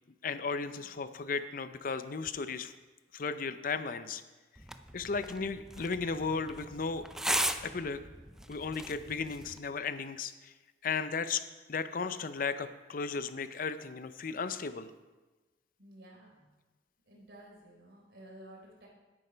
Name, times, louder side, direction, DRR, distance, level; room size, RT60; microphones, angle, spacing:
voice 1, 0.2-2.7 3.1-4.2 4.9-7.1 7.6-8.0 8.5-10.5 10.8-11.4 11.7-14.9, left 5 dB, 50° left, 12 dB, 0.5 m, -35 dB
sound 1, 4.6-9.6, right 1 dB, 5° right, 0.4 m, -37 dB
voice 2, 15.8-16.5 17.1-18.9, right 1 dB, 75° right, -2 dB, 3.7 m, -53 dB
9.9 x 8.8 x 5.1 m, 1.2 s
head